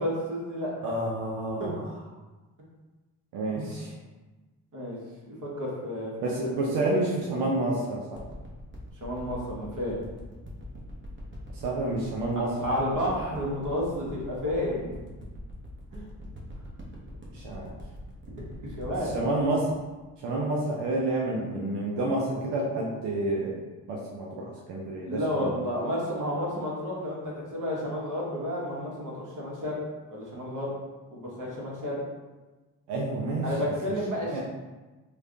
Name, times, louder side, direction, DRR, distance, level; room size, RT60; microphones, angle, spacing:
voice 1, 0.0-0.9 1.6-1.8 3.5-3.6 4.7-5.0 5.2-6.6 9.0-10.0 12.6-15.0 15.9-16.1 18.6-19.2 24.9-29.8 30.1-30.7 31.1-32.0 33.4-34.4, equal, 50° right, -4 dB, 1.3 m, -31 dB
voice 2, 0.8-1.9 3.3-3.9 6.2-8.2 11.5-12.6 12.8-13.0 17.3-17.7 19.0-19.7 20.2-23.6 23.9-25.7 32.9-33.9 34.3-34.4, right 2 dB, 90° right, -3 dB, 0.6 m, -29 dB
sound 1, 8.2-20.9 21.5-21.6, equal, 30° right, 1.0 m, -43 dB
3.3 x 2.3 x 3.7 m, 1.2 s
cardioid pair, 60°, 40 cm